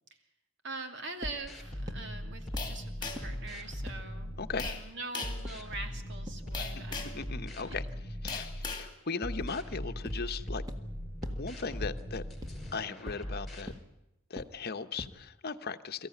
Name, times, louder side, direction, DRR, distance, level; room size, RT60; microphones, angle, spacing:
voice 1, 0.6-4.4 4.6-7.8 8.3-8.4, right 3 dB, 60° right, 5 dB, 2.7 m, -43 dB
sound 1, 1.2-1.3 1.9-2.0 2.5-2.6 3.1-3.2 3.9-4.0 4.6-4.7 5.4-5.5 6.3-6.4 8.2-8.3 9.4-9.5 10.0-10.1 10.7-10.8 11.2-11.3 11.8-11.9 12.4-12.5 13.1-13.2 13.7-13.8 14.4-14.5 15.0-15.1, left 1 dB, 20° right, 1.7 m, -39 dB
sound 2, 1.4-4.8 5.2-8.8 9.2-13.7, equal, ahead, 5.2 m, -40 dB
sound 3, 2.6-3.4 4.6-4.8 5.1-5.4 6.5-7.2 8.3-8.9, left 4 dB, 20° left, 2.6 m, -38 dB
voice 2, 7.1-7.8 8.2-10.6 11.4-12.2 12.7-13.7 14.3-16.1, left 4 dB, 50° left, 9 dB, 1.0 m, -37 dB
23.5 x 15.0 x 9.4 m, 0.91 s
head